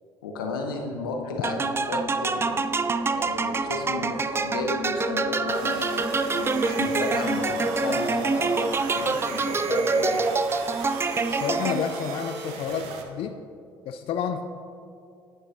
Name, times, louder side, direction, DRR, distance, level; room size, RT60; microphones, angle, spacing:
voice 1, 0.2-2.6 3.0-6.3 6.6-10.2 10.7-11.0, left 3 dB, 90° left, 2 dB, 0.7 m, -33 dB
sound 1, 1.1-11.4, left 2 dB, 85° right, 1.6 m, -36 dB
sound 2, 1.4-12.1, right 4 dB, 20° right, 0.3 m, -26 dB
sound 3, 5.5-13.0, right 4 dB, 70° right, 0.7 m, -37 dB
voice 2, 11.3-13.4 13.9-14.4, left 7 dB, 55° left, 7 dB, 0.4 m, -29 dB
9.9 x 6.2 x 2.6 m, 2.5 s
hypercardioid pair, 60°, 11 cm